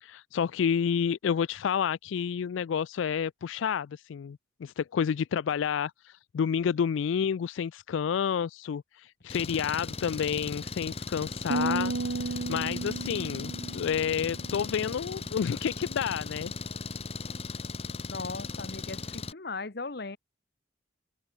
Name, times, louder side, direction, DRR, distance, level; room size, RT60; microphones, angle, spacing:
voice 1, 0.0-11.9 12.2-16.5, left 7 dB, 80° left, 0.3 m, -30 dB
Engine, 9.3-19.3, left 3 dB, 30° left, 1.1 m, -38 dB
sound 1, 11.5-14.9, right 3 dB, 85° right, 0.7 m, -34 dB
voice 2, 18.1-20.2, left 3 dB, 55° left, 1.1 m, -38 dB
open air
head